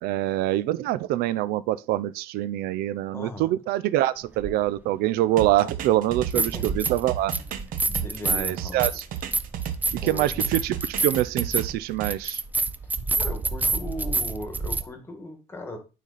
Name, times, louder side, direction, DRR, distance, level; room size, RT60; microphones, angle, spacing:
voice 1, 0.0-7.3 8.2-9.0 10.0-12.4, right 14 dB, 85° right, 0.5 m, -25 dB
voice 2, 3.1-3.6 6.3-6.6 7.4-7.5 7.9-8.8 9.9-10.5 13.1-15.8, left 1 dB, 15° left, 1.6 m, -38 dB
sound 1, 4.4-4.5 6.1-7.0 7.3-14.8, right 3 dB, 10° right, 0.5 m, -28 dB
sound 2, 5.4-10.1 10.4-12.1, right 9 dB, 60° right, 1.0 m, -33 dB
9.1 x 4.1 x 4.1 m
cardioid pair, 155°, 16 cm